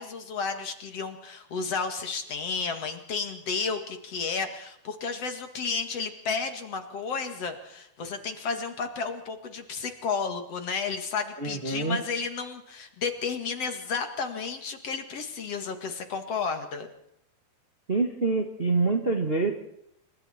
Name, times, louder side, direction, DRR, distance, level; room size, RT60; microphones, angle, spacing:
voice 1, 0.0-16.9, left 5 dB, 45° left, 7 dB, 2.5 m, -32 dB
voice 2, 11.4-12.0 17.9-19.5, right 3 dB, 70° right, 3 dB, 0.5 m, -26 dB
29.0 x 25.0 x 4.4 m, 0.76 s
omnidirectional pair, 4.5 m